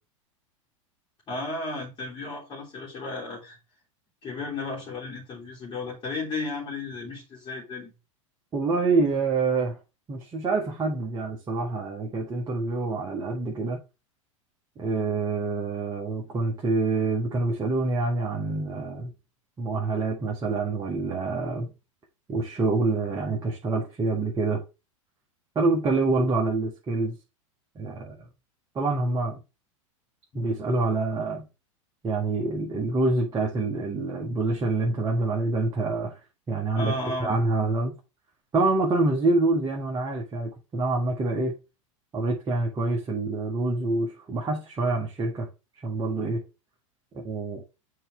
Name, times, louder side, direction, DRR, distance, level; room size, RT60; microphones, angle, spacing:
voice 1, 1.3-3.6 4.2-7.9 30.3-30.5 36.7-37.4, left 2 dB, 30° left, 3.2 m, -34 dB
voice 2, 8.5-9.8 10.1-13.8 14.8-19.1 19.6-21.7 22.3-24.6 25.5-27.2 27.7-28.2 28.7-29.4 30.3-31.4 32.0-36.2 36.5-36.9 37.2-37.9 38.5-41.6 42.1-45.5 45.8-46.4 47.2-47.6, right 3 dB, 25° right, 1.6 m, -26 dB
7.8 x 4.4 x 3.2 m
figure-of-eight pair, 90°, 17 cm